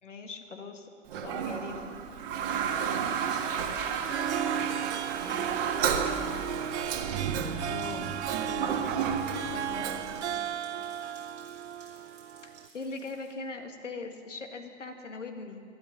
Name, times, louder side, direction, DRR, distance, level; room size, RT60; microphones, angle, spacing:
voice 1, 0.0-1.9 4.5-5.0 7.7-8.9 9.5-10.5 12.4-15.6, left 4 dB, 80° left, 4 dB, 1.9 m, -41 dB
Toilet flush, 1.1-10.2, right 7 dB, 45° right, 1.6 m, -32 dB
sound 1, 2.6-13.3, right 4 dB, 20° right, 3.2 m, -56 dB
Harp, 3.9-12.7, right 9 dB, 65° right, 0.6 m, -35 dB
voice 2, 4.6-6.8, left 3 dB, 30° left, -2 dB, 3.4 m, -50 dB
12.5 x 12.5 x 9.1 m, 2.5 s
figure-of-eight pair, 105°, 36 cm